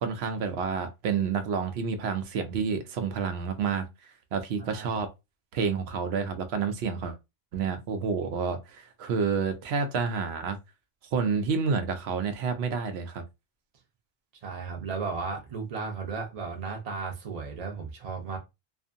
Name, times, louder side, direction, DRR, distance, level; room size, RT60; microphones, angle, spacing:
voice 1, 0.0-5.1 5.5-7.2 7.5-10.6 11.1-13.2, right 5 dB, 80° right, 0.8 m, -29 dB
voice 2, 14.4-18.4, right 4 dB, 45° right, 0.6 m, -35 dB
2.6 x 2.5 x 2.5 m
omnidirectional pair, 1.1 m